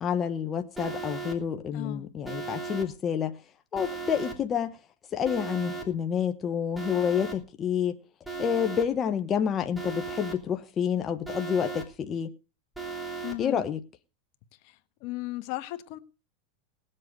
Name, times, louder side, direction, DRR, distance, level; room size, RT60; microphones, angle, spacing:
voice 1, 0.0-3.4 3.7-4.8 5.1-8.0 8.4-12.3 13.4-13.8, left 8 dB, 25° left, 1.1 m, -28 dB
Alarm, 0.8-1.3 2.2-2.8 3.7-4.3 5.2-5.8 6.7-7.3 8.2-8.8 9.7-10.3 11.2-11.8 12.7-13.3, right 4 dB, 5° right, 3.3 m, -36 dB
voice 2, 1.7-2.0 13.2-13.6 14.6-16.0, left 18 dB, 55° left, 1.3 m, -36 dB
19.0 x 7.7 x 5.2 m
supercardioid pair, 125°, 0 cm